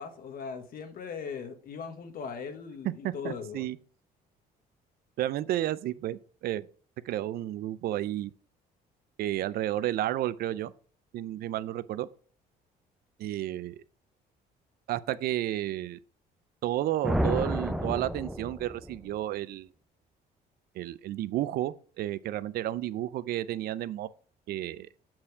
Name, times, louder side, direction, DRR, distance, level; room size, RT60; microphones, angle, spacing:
voice 1, 0.0-3.7, left 6 dB, 60° left, 1.4 m, -39 dB
voice 2, 2.8-3.8 5.2-6.6 7.0-8.3 9.2-10.7 11.1-12.1 13.2-13.8 14.9-16.0 16.6-19.7 20.8-24.1 24.5-24.9, right 13 dB, 65° right, 0.5 m, -32 dB
sound 1, 17.0-19.0, equal, ahead, 0.6 m, -30 dB
7.6 x 4.5 x 4.7 m
cardioid pair, 110°, 17 cm